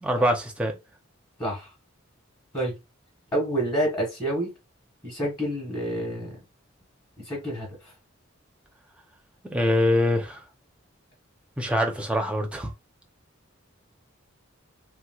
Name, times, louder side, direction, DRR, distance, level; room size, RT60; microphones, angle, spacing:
voice 1, 0.0-0.8 9.4-10.4 11.6-12.7, left 1 dB, 5° right, 0.6 m, -24 dB
voice 2, 1.4-1.7 2.5-2.8 3.3-4.5 5.0-6.4 7.2-7.9, right 1 dB, 25° left, 1.6 m, -28 dB
3.2 x 3.1 x 2.3 m
head